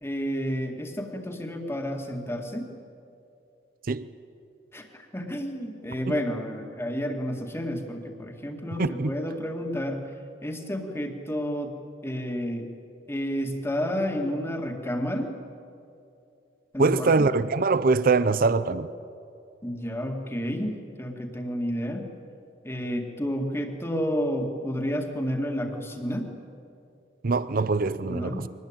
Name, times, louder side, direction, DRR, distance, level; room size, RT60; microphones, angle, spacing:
voice 1, 0.0-2.7 4.7-10.0 10.4-11.7 12.0-12.7 13.1-15.3 16.7-17.3 19.6-22.1 22.6-26.3 28.0-28.5, equal, 15° left, 2.2 m, -30 dB
voice 2, 8.8-9.1 16.8-18.9 27.2-28.5, right 4 dB, 50° right, 0.6 m, -23 dB
23.5 x 19.5 x 8.9 m
head